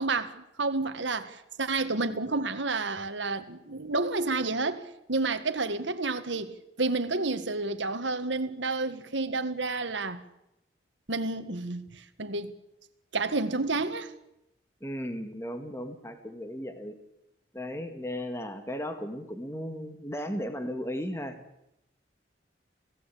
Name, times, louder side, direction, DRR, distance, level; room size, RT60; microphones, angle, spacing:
voice 1, 0.0-6.5 6.8-10.2 11.1-12.5 13.1-14.1, right 3 dB, 85° right, 1.8 m, -30 dB
voice 2, 14.8-16.9 17.5-21.4, equal, 15° left, 2.0 m, -35 dB
26.5 x 17.0 x 8.6 m
head